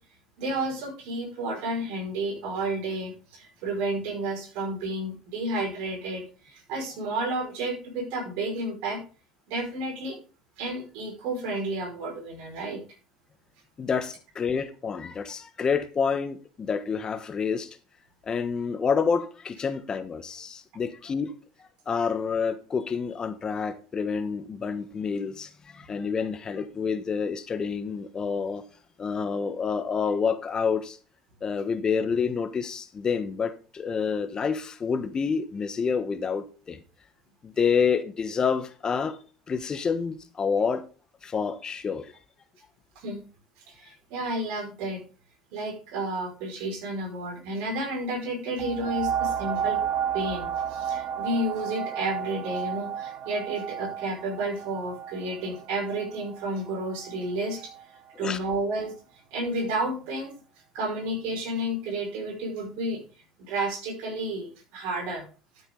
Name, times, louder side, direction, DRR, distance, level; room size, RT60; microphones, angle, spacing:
voice 1, 0.4-9.0 9.5-10.2 10.6-12.8 43.0-43.2 43.7-45.0 45.5-49.8 50.1-57.7 58.2-58.9 59.3-60.3 60.7-63.0 63.5-65.2, right 1 dB, 65° right, 5.3 m, -31 dB
voice 2, 13.8-17.7 18.3-21.3 21.9-28.6 29.0-31.0 31.4-36.8 37.4-39.2 39.5-40.8 41.2-42.1 58.2-58.4, left 6 dB, 30° left, 1.2 m, -28 dB
sound 1, 48.6-57.8 58.5-58.6, right 8 dB, 45° right, 1.1 m, -32 dB
12.5 x 8.0 x 3.9 m
hypercardioid pair, 70°, 2 cm